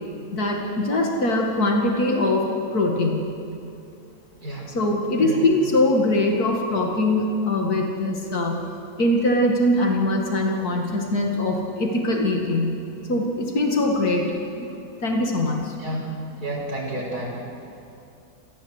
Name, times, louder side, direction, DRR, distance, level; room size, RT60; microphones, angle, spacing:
voice 1, 0.3-3.3 4.7-8.7 9.0-12.8 13.1-14.7 15.0-15.8, left 1 dB, 80° left, 0 dB, 2.7 m, -22 dB
voice 2, 4.4-4.7 5.2-5.4 15.8-16.1 16.4-17.5, right 1 dB, 80° right, -3 dB, 6.2 m, -30 dB
28.0 x 14.5 x 8.2 m, 2.6 s
omnidirectional pair, 1.6 m